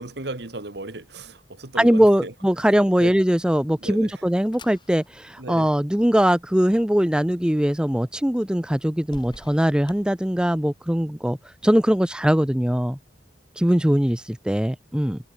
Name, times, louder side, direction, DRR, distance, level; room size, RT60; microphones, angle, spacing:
voice 1, 0.0-2.3 2.6-3.2 3.8-4.2 5.4-5.7, right 2 dB, 60° right, 1.8 m, -36 dB
voice 2, 1.8-11.4 11.6-13.0 13.6-15.2, equal, 5° right, 0.6 m, -21 dB
sound 1, 4.0-10.9, left 2 dB, 25° left, 5.3 m, -52 dB
head